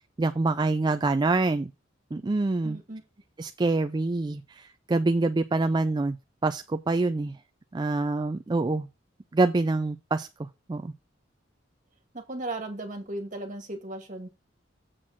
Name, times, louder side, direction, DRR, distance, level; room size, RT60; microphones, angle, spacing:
voice 1, 0.2-1.7 2.1-2.8 3.4-6.2 6.4-7.4 7.7-8.9 9.3-10.3 10.7-10.9, right 3 dB, 20° right, 0.3 m, -26 dB
voice 2, 2.6-3.0 12.1-14.3, right 2 dB, 40° right, 2.0 m, -36 dB
7.5 x 4.3 x 5.8 m
head